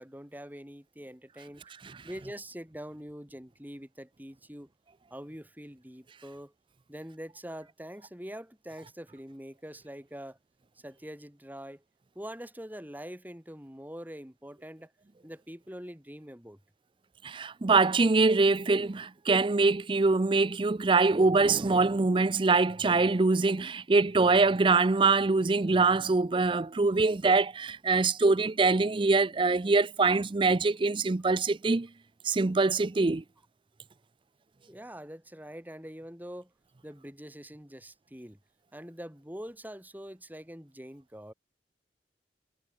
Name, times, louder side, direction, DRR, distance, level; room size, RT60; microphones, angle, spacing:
voice 1, 0.0-1.6 2.0-4.7 5.1-6.5 6.9-10.4 10.8-11.8 12.1-14.9 15.2-16.6 34.7-36.5 36.8-38.4 38.7-41.3, equal, 10° right, 5.9 m, -44 dB
voice 2, 17.2-31.9 32.2-33.2, right 3 dB, 30° right, 0.5 m, -24 dB
head